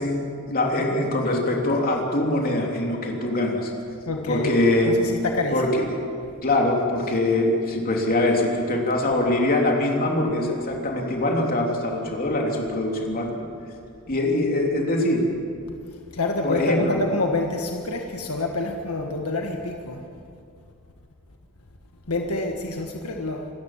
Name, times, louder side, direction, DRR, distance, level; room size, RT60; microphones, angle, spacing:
voice 1, 0.0-3.7 4.3-5.0 5.5-6.0 6.4-13.4 14.1-15.2 16.4-17.2, left 1 dB, 40° left, 0 dB, 3.3 m, -23 dB
voice 2, 4.1-5.7 16.1-20.0 22.1-23.5, left 2 dB, 80° left, 2 dB, 1.6 m, -27 dB
27.0 x 14.0 x 7.4 m, 2.4 s
head